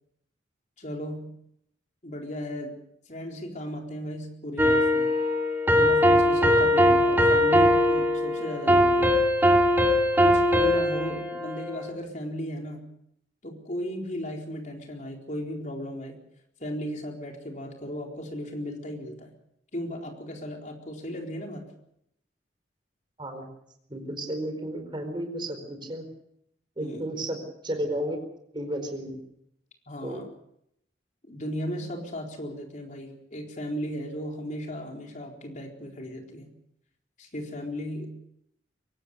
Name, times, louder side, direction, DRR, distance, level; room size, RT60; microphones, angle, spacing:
voice 1, 0.8-1.3 2.0-2.8 3.1-5.1 5.7-9.2 10.2-12.9 13.4-16.2 16.6-19.3 19.7-21.7 26.8-27.1 29.9-30.3 31.3-36.5 37.2-38.2, equal, 45° left, 2 dB, 4.2 m, -35 dB
sound 1, 4.6-11.9, left 1 dB, 10° right, 2.9 m, -21 dB
voice 2, 23.9-26.1 26.8-27.4 27.6-28.2 28.5-29.2 30.0-30.2, right 1 dB, 25° right, 6 dB, 4.6 m, -32 dB
23.5 x 18.0 x 6.8 m, 0.74 s
head